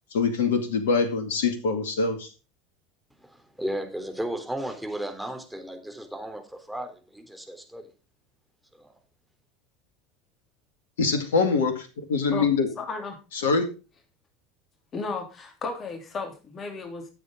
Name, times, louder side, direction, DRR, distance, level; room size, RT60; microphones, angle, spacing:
voice 1, 0.1-2.3 11.0-12.7 13.3-13.7, left 4 dB, 70° left, 8 dB, 2.2 m, -24 dB
voice 2, 3.2-7.9 8.7-8.9, right 1 dB, ahead, 4 dB, 3.5 m, -35 dB
voice 3, 12.8-13.2 14.9-17.1, left 4 dB, 35° left, 4 dB, 3.2 m, -34 dB
14.5 x 8.0 x 3.8 m, 0.32 s
figure-of-eight pair, 75°, 0 cm